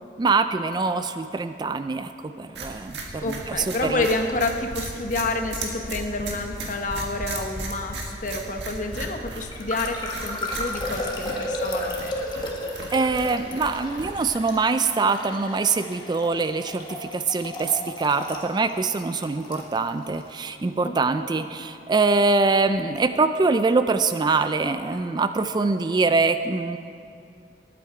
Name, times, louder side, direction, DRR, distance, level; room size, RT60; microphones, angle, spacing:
voice 1, 0.2-4.1 12.9-26.8, right 4 dB, 25° right, 10 dB, 0.3 m, -24 dB
sound 1, 2.5-14.5, right 2 dB, 75° right, 1.8 m, -36 dB
voice 2, 3.2-12.1 20.8-21.0, left 2 dB, 45° left, 5 dB, 1.0 m, -29 dB
sound 2, 9.4-20.2, left 1 dB, 25° left, 1.4 m, -34 dB
19.5 x 8.6 x 4.8 m, 2.5 s
head